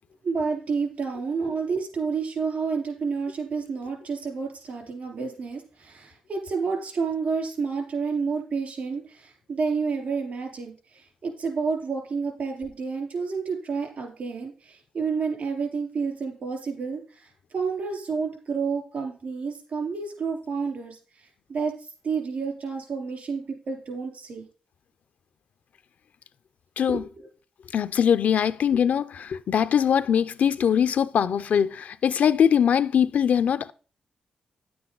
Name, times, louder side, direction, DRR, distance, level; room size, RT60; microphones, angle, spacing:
voice 1, 0.2-21.8 22.0-24.5 26.9-27.3, right 5 dB, 65° right, 3.7 m, -30 dB
voice 2, 27.7-33.7, left 8 dB, 70° left, 0.5 m, -22 dB
10.0 x 7.7 x 3.9 m
cardioid pair, 70°, 3 cm